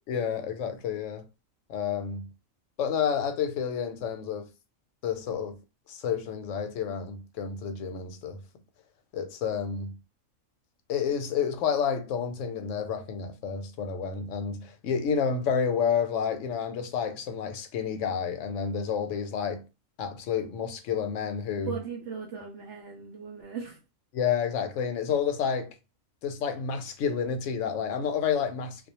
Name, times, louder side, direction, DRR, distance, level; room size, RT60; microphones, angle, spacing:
voice 1, 0.1-1.2 1.7-2.3 2.8-4.5 5.0-5.6 5.9-8.4 9.1-10.0 10.9-19.7 20.0-21.8 24.1-25.7 26.2-28.9, left 7 dB, 70° left, 0.9 m, -30 dB
voice 2, 21.7-23.8, right 6 dB, 70° right, 0.9 m, -38 dB
2.3 x 2.1 x 2.9 m
omnidirectional pair, 1.4 m